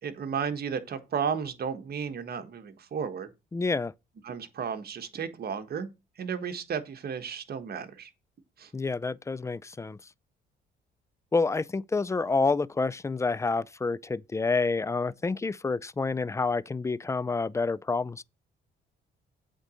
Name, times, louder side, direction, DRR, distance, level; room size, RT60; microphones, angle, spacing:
voice 1, 0.0-3.3 4.2-5.9 6.2-8.1 8.6-8.7, right 6 dB, 50° right, 1.3 m, -33 dB
voice 2, 3.5-3.9 8.7-10.0 11.3-18.2, left 3 dB, 15° left, 0.4 m, -28 dB
8.1 x 4.0 x 6.2 m
cardioid pair, 90°, 20 cm